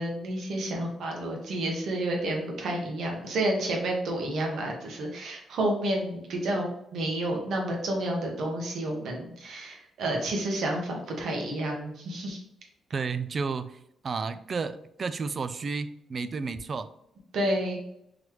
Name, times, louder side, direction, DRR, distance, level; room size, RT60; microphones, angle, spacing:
voice 1, 0.0-12.4 17.3-17.8, right 1 dB, 70° right, 0 dB, 1.1 m, -30 dB
voice 2, 12.9-13.8 14.0-16.9, right 4 dB, 45° right, 12 dB, 0.3 m, -32 dB
3.9 x 3.1 x 3.1 m, 0.78 s
cardioid pair, 95°, 0 cm